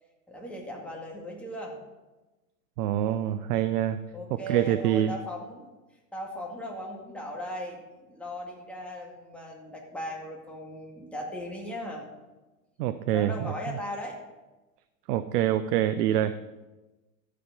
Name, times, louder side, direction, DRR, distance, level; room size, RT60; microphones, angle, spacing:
voice 1, 0.3-1.8 4.1-5.7 6.1-12.1 13.1-14.2, equal, 5° left, -2 dB, 2.2 m, -38 dB
voice 2, 2.8-4.0 4.3-5.1 12.8-13.3 15.1-16.4, right 11 dB, 75° right, 12 dB, 0.6 m, -25 dB
14.0 x 5.1 x 5.2 m, 1.1 s
hypercardioid pair, 115°, 47 cm